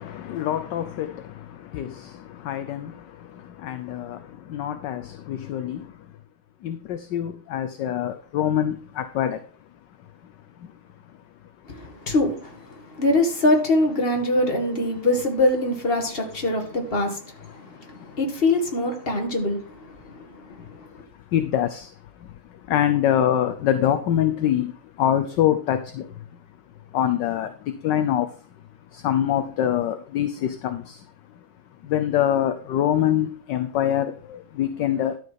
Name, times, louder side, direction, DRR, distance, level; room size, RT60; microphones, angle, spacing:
voice 1, 0.0-6.1 6.6-9.4 10.0-10.8 17.5-18.2 20.0-26.4 26.9-28.4 28.9-31.1 31.3-31.5 31.8-35.2, left 10 dB, 65° left, 1.2 m, -26 dB
voice 2, 11.7-21.0, left 1 dB, 25° left, 2.2 m, -24 dB
12.5 x 5.4 x 5.7 m
omnidirectional pair, 2.3 m